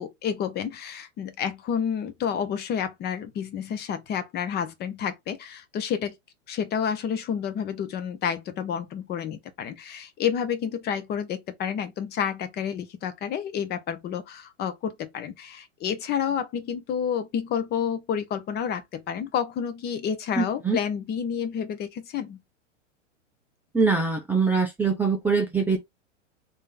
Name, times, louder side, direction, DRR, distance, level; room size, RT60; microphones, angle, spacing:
voice 1, 0.0-6.1 6.5-22.4, left 8 dB, 25° left, 0.8 m, -30 dB
voice 2, 20.4-20.8 23.7-25.8, right 4 dB, 5° right, 0.5 m, -23 dB
3.3 x 2.7 x 3.7 m
hypercardioid pair, 110°, 38 cm